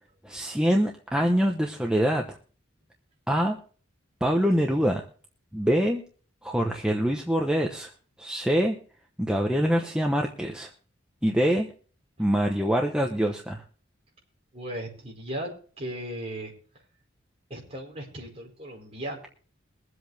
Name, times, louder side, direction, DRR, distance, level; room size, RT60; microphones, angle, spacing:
voice 1, 0.2-2.4 3.3-3.6 4.2-5.0 5.5-6.0 6.4-7.9 8.2-8.7 9.2-10.7 11.2-11.7 12.2-13.6, equal, 5° right, 1 dB, 0.9 m, -24 dB
voice 2, 14.5-16.5 17.5-19.3, right 1 dB, 30° right, -1 dB, 4.6 m, -36 dB
22.5 x 7.9 x 3.4 m, 0.42 s
head